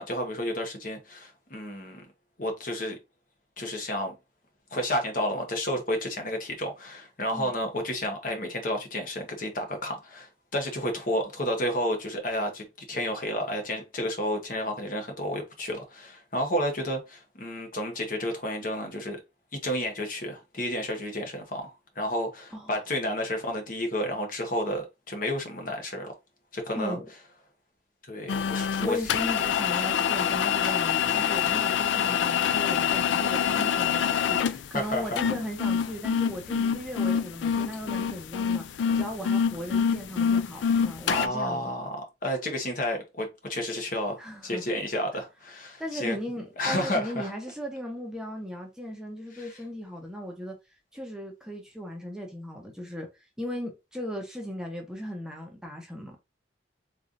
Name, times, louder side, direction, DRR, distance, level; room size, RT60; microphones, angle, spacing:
voice 1, 0.0-2.1 2.4-3.0 3.6-4.1 4.7-19.2 19.5-26.1 26.5-27.0 28.1-29.0 30.6-30.8 34.7-35.1 41.1-42.0 42.2-46.1 46.6-47.3 49.3-49.5, left 1 dB, 45° left, 1.0 m, -31 dB
voice 2, 26.7-27.1 28.8-41.7 44.2-44.6 45.8-50.5 50.9-56.2, equal, 5° right, 0.8 m, -37 dB
sound 1, 28.3-41.3, left 8 dB, 75° left, 0.3 m, -26 dB
3.7 x 3.2 x 2.5 m
head